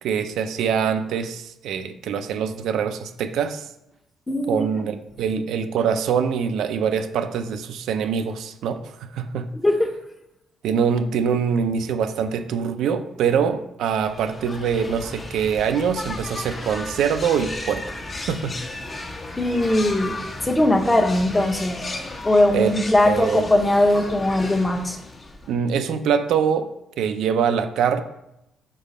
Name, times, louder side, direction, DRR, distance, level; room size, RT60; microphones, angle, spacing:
voice 1, 0.0-3.6 4.5-9.5 10.6-17.9 18.3-18.5 22.5-22.7 23.1-23.4 25.5-26.7 27.0-28.0, right 7 dB, 80° right, 9 dB, 0.5 m, -24 dB
voice 2, 4.3-4.9 9.5-9.9 19.4-20.1 20.4-21.8 22.2-25.0, left 1 dB, 20° left, 3 dB, 1.0 m, -20 dB
sound 1, 14.0-25.6, left 2 dB, 40° left, 1.2 m, -35 dB
5.4 x 4.0 x 5.4 m, 0.86 s
cardioid pair, 90°, 0 cm